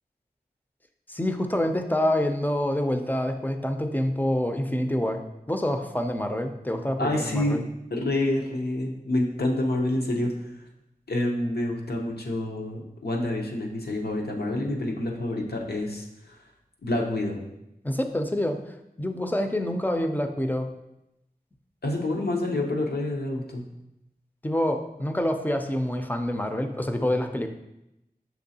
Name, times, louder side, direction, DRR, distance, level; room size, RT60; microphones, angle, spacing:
voice 1, 1.1-5.2 5.5-7.6 17.8-18.6 19.0-20.7 24.4-27.5, left 1 dB, 10° left, 5 dB, 0.4 m, -27 dB
voice 2, 7.0-7.6 7.9-10.3 11.1-16.4 16.8-17.4 21.8-23.6, left 1 dB, 85° left, 0 dB, 0.7 m, -27 dB
6.0 x 3.1 x 2.7 m, 0.88 s
wide cardioid pair, 45°, 16 cm